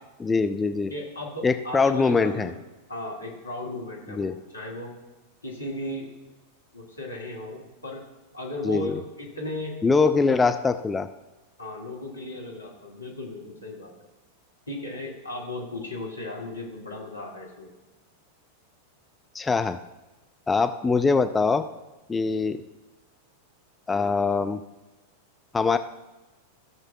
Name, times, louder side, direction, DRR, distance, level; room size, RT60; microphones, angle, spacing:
voice 1, 0.2-0.9 1.4-2.5 4.1-4.4 8.6-8.9 9.8-11.1 19.3-19.8 20.5-21.6 22.1-22.6 23.9-24.6 25.5-25.8, left 4 dB, 15° left, 9 dB, 0.3 m, -23 dB
voice 2, 0.9-2.6 2.9-4.9 5.4-6.1 6.7-8.0 8.3-9.8 10.1-10.4 11.6-13.9 14.7-17.7, left 1 dB, 85° left, -2 dB, 1.7 m, -36 dB
16.0 x 6.7 x 2.3 m, 1.1 s
figure-of-eight pair, 90°, 0 cm